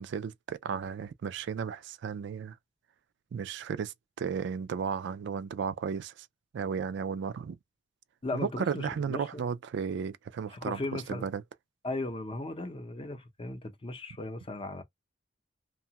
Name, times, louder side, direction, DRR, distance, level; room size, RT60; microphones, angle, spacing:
voice 1, 0.0-2.6 3.3-6.3 6.5-7.6 8.3-11.4, right 6 dB, 65° right, 0.3 m, -34 dB
voice 2, 8.2-9.4 10.5-11.3 11.8-14.8, left 2 dB, 30° left, 0.6 m, -37 dB
2.8 x 2.2 x 2.8 m
head